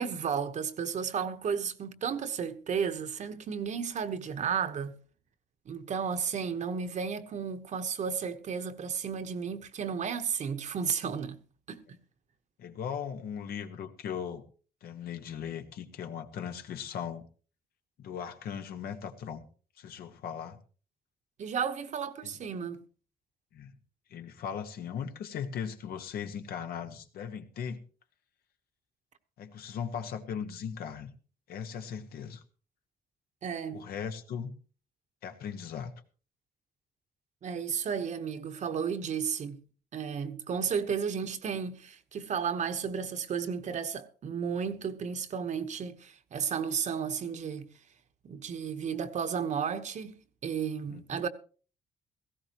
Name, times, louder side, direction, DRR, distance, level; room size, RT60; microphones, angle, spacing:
voice 1, 0.0-5.0 5.7-11.4 11.7-12.0 21.4-22.8 33.4-33.8 37.4-39.6 39.9-47.7 48.2-50.2 50.4-51.3, right 6 dB, 50° right, 1.1 m, -33 dB
voice 2, 12.6-14.4 14.8-17.3 18.0-19.4 19.8-20.6 22.2-22.3 23.5-23.7 24.1-27.8 29.4-31.1 31.5-32.4 33.7-34.5 35.2-35.9 50.9-51.2, left 7 dB, 80° left, 1.5 m, -38 dB
18.0 x 15.5 x 3.0 m
cardioid pair, 135°, 15 cm